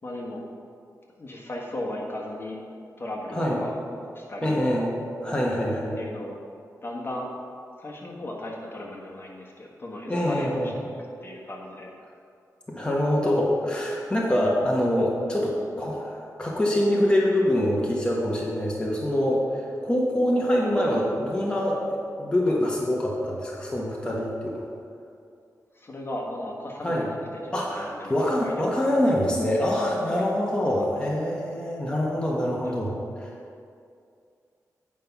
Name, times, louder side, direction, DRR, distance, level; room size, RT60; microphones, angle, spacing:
voice 1, 0.0-0.4 1.2-2.6 3.0-3.7 4.1-4.6 5.9-6.4 6.8-7.3 7.8-10.7 11.2-11.9 25.7-28.6 30.6-30.9 32.6-32.9, left 1 dB, 40° left, -2 dB, 1.4 m, -36 dB
voice 2, 4.4-4.9 5.2-6.0 10.1-10.7 12.7-24.6 26.8-27.1 27.5-32.9 33.2-33.3, left 1 dB, 15° left, -4 dB, 1.2 m, -25 dB
9.2 x 5.3 x 5.9 m, 2.4 s
wide cardioid pair, 105°, 6 cm